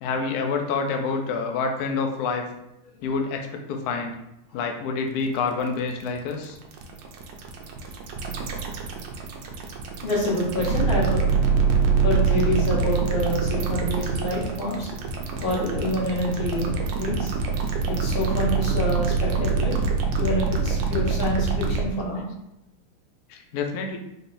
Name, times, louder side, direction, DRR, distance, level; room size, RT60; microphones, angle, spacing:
voice 1, 0.0-2.5 3.0-4.1 4.5-6.6 23.3-24.0, left 4 dB, 85° left, 3 dB, 0.8 m, -27 dB
sound 1, 5.2-21.8, right 5 dB, 75° right, 1.1 m, -25 dB
voice 2, 10.0-11.2 12.0-14.9 15.4-17.3 17.9-19.8 20.2-22.3, left 1 dB, 70° left, -5 dB, 2.0 m, -27 dB
4.3 x 3.4 x 2.5 m, 0.85 s
omnidirectional pair, 2.3 m